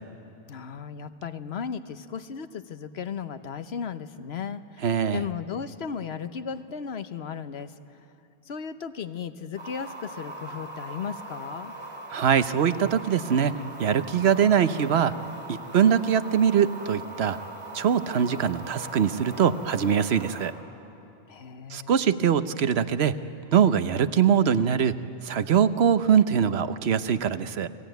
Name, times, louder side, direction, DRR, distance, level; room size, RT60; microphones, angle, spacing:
voice 1, 0.5-7.7 8.5-11.7 21.3-22.0, left 6 dB, 80° left, 11 dB, 1.2 m, -35 dB
voice 2, 4.8-5.2 12.1-13.5 13.8-15.1 15.5-17.4 17.7-20.5 21.7-23.2 23.5-27.7, right 8 dB, 80° right, 12 dB, 1.1 m, -22 dB
sound 1, 9.6-20.5, right 2 dB, 30° right, 3.0 m, -40 dB
29.5 x 19.5 x 9.2 m, 2.8 s
omnidirectional pair, 1.1 m